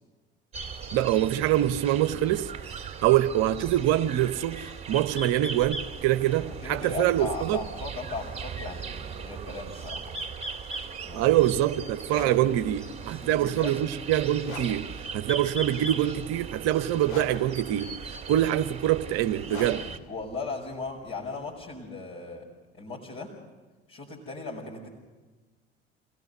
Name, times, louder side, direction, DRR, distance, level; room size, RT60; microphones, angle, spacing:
sound 1, 0.5-20.0, right 5 dB, 20° right, 2.7 m, -38 dB
voice 1, 0.9-2.5 3.0-7.6 11.1-17.9 18.3-19.8, right 13 dB, 55° right, 0.9 m, -25 dB
voice 2, 6.4-10.2 11.0-11.3 12.2-12.3 13.1-13.7 20.1-22.5 22.8-23.3 23.9-24.9, left 4 dB, 45° left, 5.4 m, -37 dB
sound 2, 12.0-21.9, left 4 dB, 85° left, 3.1 m, -45 dB
28.0 x 17.0 x 6.7 m
hypercardioid pair, 65°, 31 cm